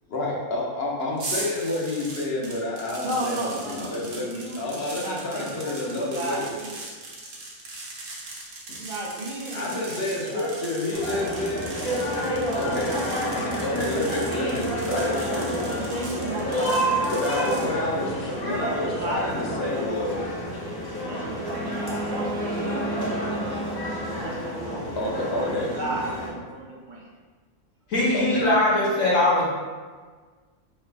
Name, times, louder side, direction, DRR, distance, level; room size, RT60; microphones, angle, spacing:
voice 1, 0.1-6.5 9.5-12.0 12.5-13.0 13.2-13.3 13.6-15.9 17.1-20.2 25.0-25.7 28.1-28.5, left 2 dB, 50° left, -3 dB, 0.9 m, -29 dB
sound 1, 1.2-17.7, right 2 dB, 65° right, 1.2 m, -39 dB
voice 2, 3.0-6.8 8.8-9.8 10.3-10.5 15.7-17.1 18.4-20.3 21.1-23.6 24.2-27.1, right 1 dB, 50° right, -3 dB, 0.6 m, -34 dB
sound 2, 10.9-26.3, equal, 25° left, 0.5 m, -29 dB
Wind instrument woodwind instrument, 21.3-24.3, right 1 dB, 85° right, 1.1 m, -34 dB
voice 3, 27.9-29.5, left 1 dB, 70° left, -7 dB, 1.3 m, -21 dB
3.3 x 2.9 x 4.6 m, 1.5 s
omnidirectional pair, 1.5 m